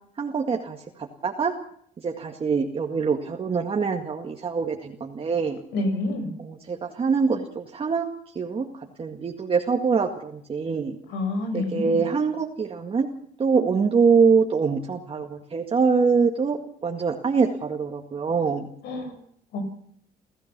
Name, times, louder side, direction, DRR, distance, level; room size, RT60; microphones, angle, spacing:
voice 1, 0.2-1.5 2.0-5.6 6.4-8.1 8.4-8.7 9.0-11.0 11.5-13.1 13.4-18.7, right 5 dB, 35° right, 1 dB, 2.0 m, -24 dB
voice 2, 5.7-6.3 11.1-12.1 18.8-19.1 19.5-19.6, left 2 dB, 80° left, 7 dB, 6.5 m, -28 dB
29.0 x 14.5 x 6.1 m, 0.66 s
cardioid pair, 110°, 17 cm